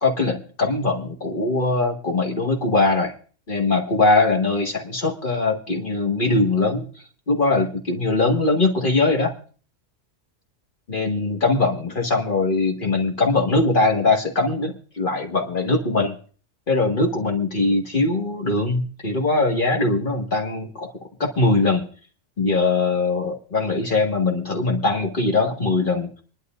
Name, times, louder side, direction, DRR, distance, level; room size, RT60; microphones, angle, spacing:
voice 1, 0.0-3.1 3.5-9.3 10.9-16.2 16.7-20.9 21.2-21.9 22.4-26.1, left 3 dB, 45° left, 1 dB, 1.9 m, -21 dB
25.5 x 11.0 x 2.5 m, 0.42 s
omnidirectional pair, 1.3 m